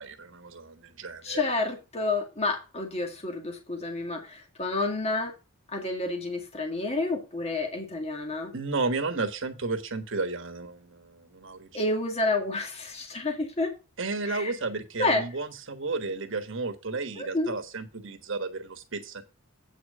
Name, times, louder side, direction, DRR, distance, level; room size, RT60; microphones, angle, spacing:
voice 1, 0.0-1.4 8.5-11.7 14.0-19.2, right 3 dB, 60° right, 7 dB, 1.3 m, -33 dB
voice 2, 1.2-5.3 5.7-8.5 11.7-13.7 14.3-14.5 15.0-15.2 17.2-17.5, left 2 dB, 30° left, 4 dB, 1.9 m, -29 dB
8.5 x 4.9 x 6.5 m, 0.29 s
head